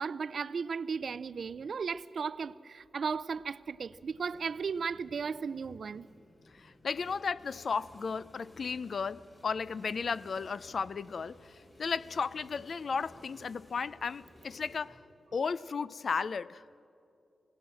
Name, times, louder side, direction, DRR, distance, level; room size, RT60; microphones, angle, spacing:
voice 1, 0.0-6.1, right 5 dB, 65° right, 0.5 m, -35 dB
sound 1, 4.1-14.8, left 1 dB, 45° left, 5.1 m, -57 dB
voice 2, 6.5-15.0 15.3-16.6, left 5 dB, 65° left, 0.4 m, -34 dB
27.0 x 16.5 x 7.6 m
wide cardioid pair, 95°, 0 cm